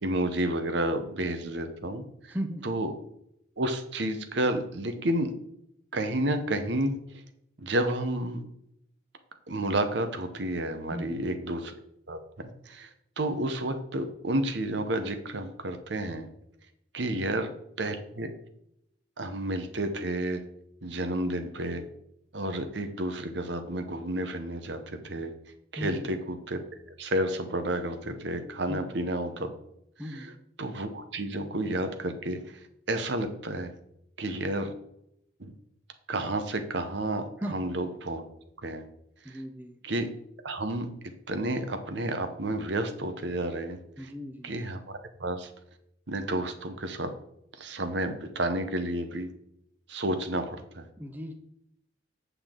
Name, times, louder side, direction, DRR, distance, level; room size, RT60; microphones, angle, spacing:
voice 1, 0.0-2.4 2.6-2.9 3.6-5.3 5.9-7.0 7.6-8.4 9.5-11.7 12.1-12.9 13.2-16.3 16.9-17.5 17.8-18.3 19.2-20.4 20.8-21.8 22.3-25.3 25.7-26.6 27.0-29.5 30.1-30.3 30.6-32.4 32.9-33.7 34.2-34.7 35.4-35.5 36.1-38.2 38.6-38.8 39.8-40.1 40.4-40.9 41.3-44.1 44.4-45.5 46.1-47.1 47.6-49.3 49.9-50.8, right 1 dB, 65° right, 8 dB, 0.9 m, -31 dB
voice 2, 2.3-2.7 10.9-11.2 17.1-17.4 25.8-26.1 28.7-28.9 30.0-30.4 37.4-37.7 39.2-39.8 44.0-44.6 51.0-51.3, equal, 10° right, 5 dB, 0.6 m, -37 dB
8.1 x 7.0 x 3.7 m, 0.77 s
head